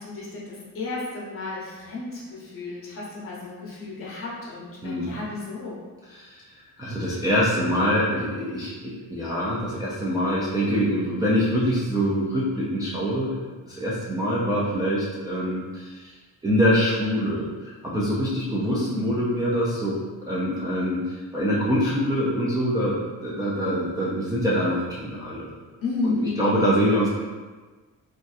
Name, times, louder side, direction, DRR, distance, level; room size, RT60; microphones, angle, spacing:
voice 1, 0.0-5.8 18.7-19.1 25.8-26.5, left 3 dB, 40° left, -5 dB, 0.9 m, -32 dB
voice 2, 4.8-5.2 6.1-6.3 6.8-13.3 13.7-16.1 16.4-20.0 20.3-25.5 26.0-27.1, equal, 10° right, -9 dB, 0.3 m, -24 dB
3.9 x 2.3 x 2.4 m, 1.4 s
cardioid pair, 165°, 34 cm